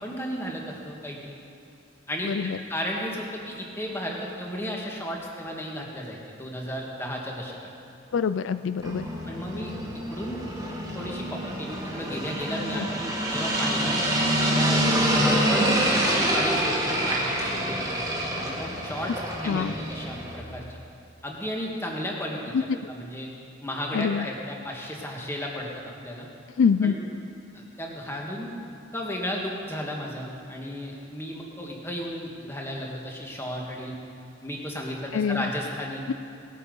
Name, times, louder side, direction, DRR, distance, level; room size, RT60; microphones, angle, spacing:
voice 1, 0.0-1.4 2.1-2.3 2.7-7.6 9.3-9.7 10.1-10.4 10.9-14.0 14.5-19.1 19.4-20.8 21.2-23.3 23.6-26.3 26.8-27.0 27.5-28.5 28.9-33.9 34.4-36.0, equal, 10° left, -1 dB, 1.7 m, -34 dB
voice 2, 2.2-2.6 8.1-9.1 12.6-12.9 19.4-19.7 22.5-22.8 23.9-24.3 26.6-27.0 35.1-35.5 36.1-36.2, left 6 dB, 75° left, 12 dB, 0.4 m, -25 dB
sound 1, 8.8-20.4, right 1 dB, 20° right, 1.8 m, -26 dB
19.0 x 8.5 x 5.4 m, 2.7 s
head